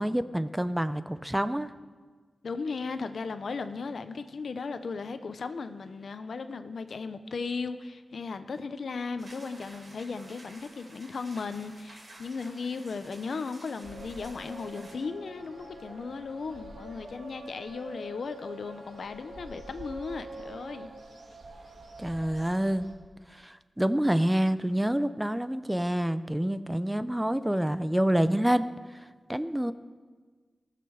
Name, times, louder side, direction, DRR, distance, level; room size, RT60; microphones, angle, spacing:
voice 1, 0.0-1.7 22.0-22.9 23.3-29.0 29.3-29.7, right 1 dB, 10° right, 12 dB, 0.5 m, -27 dB
voice 2, 2.4-20.9, left 4 dB, 75° left, 10 dB, 0.7 m, -36 dB
sound 1, 9.2-14.9, right 1 dB, 45° right, 4.0 m, -52 dB
sound 2, 13.8-22.9, right 1 dB, 75° right, 2.0 m, -45 dB
18.0 x 6.8 x 6.4 m, 1.5 s
wide cardioid pair, 90°, 0 cm